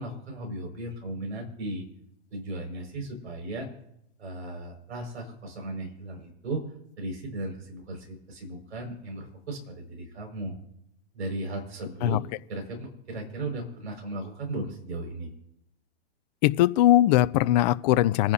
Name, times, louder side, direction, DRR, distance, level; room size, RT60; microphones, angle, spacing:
voice 1, 0.0-1.8 2.3-3.7 4.2-6.6 7.0-10.5 11.1-12.2 12.5-15.3, right 2 dB, 80° right, 2 dB, 5.6 m, -36 dB
voice 2, 16.4-18.3, left 14 dB, 40° left, 14 dB, 0.5 m, -20 dB
27.0 x 10.5 x 2.8 m, 0.79 s
hypercardioid pair, 135°, 33 cm